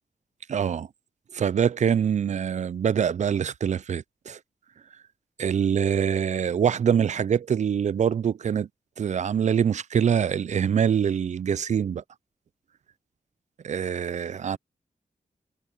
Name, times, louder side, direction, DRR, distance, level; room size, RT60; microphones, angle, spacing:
voice 1, 0.5-0.9 1.3-4.4 5.4-8.7 9.0-12.0 13.6-14.6, right 8 dB, 55° right, 0.4 m, -24 dB
wide cardioid pair, 175°, 15 cm